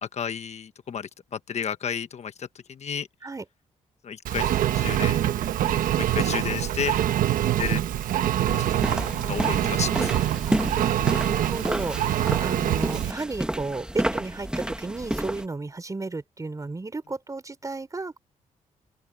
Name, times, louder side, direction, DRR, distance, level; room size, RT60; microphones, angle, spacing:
voice 1, 0.0-3.1 4.0-5.2 5.9-7.0 7.6-7.8 8.6-8.9 9.3-10.3, left 7 dB, 55° left, 1.2 m, -32 dB
Engine, 4.3-13.1, right 12 dB, 85° right, 1.1 m, -25 dB
sound 1, 8.5-15.4, right 1 dB, 5° right, 1.5 m, -30 dB
voice 2, 10.5-18.2, right 3 dB, 25° right, 4.3 m, -33 dB
open air
cardioid pair, 90°, 14 cm